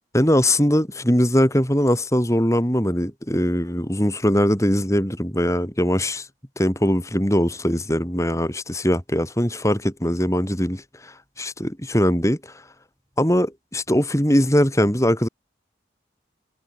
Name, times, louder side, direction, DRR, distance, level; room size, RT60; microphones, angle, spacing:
voice 1, 0.1-6.3 6.6-12.5 13.2-15.3, equal, 15° left, 6.1 m, -21 dB
head